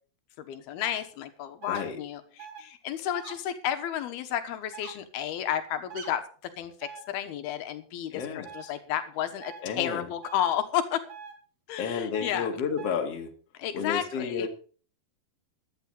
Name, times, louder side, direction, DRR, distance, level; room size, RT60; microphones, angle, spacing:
voice 1, 0.4-6.2 6.6-11.0 11.7-12.6 13.6-14.5, left 10 dB, 85° left, 9 dB, 3.1 m, -32 dB
sound 1, 0.8-1.0 1.6-1.8 2.4-2.6 3.1-3.3 4.7-4.9 5.9-6.1 6.8-7.0 8.4-8.7 9.4-9.6 10.2-10.5 11.1-11.3 12.1-12.3 12.8-12.9, right 7 dB, 45° right, 3.3 m, -43 dB
voice 2, 1.7-2.0 8.1-8.7 9.6-10.1 11.8-13.3 13.7-14.5, left 6 dB, 45° left, 3 dB, 2.8 m, -31 dB
14.5 x 11.0 x 4.0 m, 0.41 s
omnidirectional pair, 4.3 m